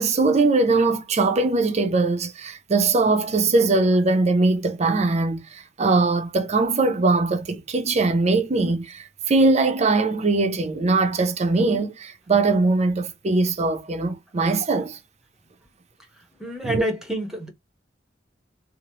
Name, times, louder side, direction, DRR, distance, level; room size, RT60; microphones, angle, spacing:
voice 1, 0.0-15.0 16.6-16.8, right 3 dB, 35° right, 0.5 m, -21 dB
voice 2, 16.4-17.5, right 1 dB, 5° right, 0.9 m, -28 dB
3.0 x 2.0 x 2.8 m
head